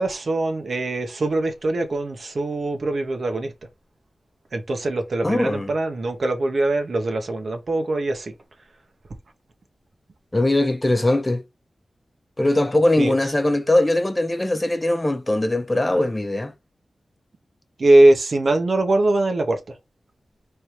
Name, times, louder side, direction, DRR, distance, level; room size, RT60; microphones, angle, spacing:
voice 1, 0.0-3.5 4.5-8.3 13.0-13.2 17.8-19.8, right 2 dB, 65° right, 1.1 m, -21 dB
voice 2, 5.2-5.7 10.3-11.4 12.4-16.5, left 1 dB, 20° left, 0.8 m, -21 dB
4.3 x 3.4 x 3.0 m
wide cardioid pair, 80°, 0 cm